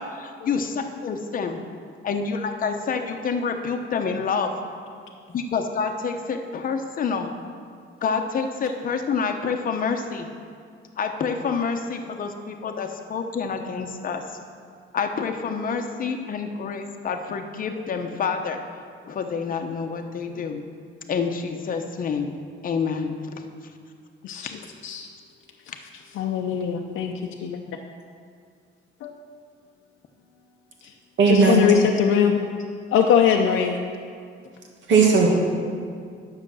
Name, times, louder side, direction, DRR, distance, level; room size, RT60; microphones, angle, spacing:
voice 1, 0.0-1.6 2.0-4.5 5.3-7.3 8.0-10.3 11.0-14.4 14.9-18.6 19.1-20.6 21.1-22.3 22.6-23.2 24.3-24.5, left 5 dB, 45° left, 5 dB, 0.9 m, -28 dB
voice 2, 26.2-27.5 29.0-29.1 31.3-32.4 32.9-33.8, left 8 dB, 75° left, 2 dB, 0.6 m, -21 dB
voice 3, 31.2-31.6 34.9-35.3, right 4 dB, 65° right, 0 dB, 1.9 m, -16 dB
10.0 x 6.7 x 6.2 m, 2.2 s
cardioid pair, 145°, 20 cm